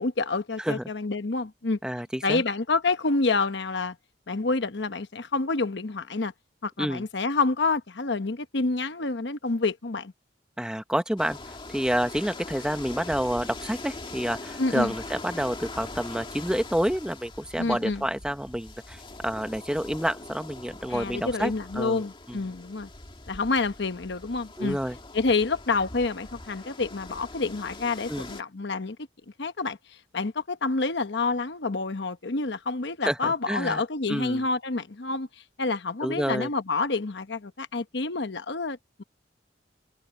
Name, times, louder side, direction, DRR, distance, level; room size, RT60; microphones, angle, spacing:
voice 1, 0.0-1.8 2.2-4.0 4.3-6.3 6.6-10.1 14.6-14.9 17.6-18.0 20.9-22.9 23.3-24.8 25.1-29.0 29.4-29.8 30.1-35.3 35.6-39.0, left 3 dB, 70° left, 1.1 m, -28 dB
voice 2, 1.8-2.4 6.8-7.1 10.6-11.4 11.7-22.0 22.3-22.4 24.6-25.0 28.1-28.3 33.0-33.8 34.1-34.4 36.0-36.5, equal, 5° right, 1.1 m, -29 dB
sound 1, 11.2-28.4, left 2 dB, 30° left, 2.2 m, -42 dB
head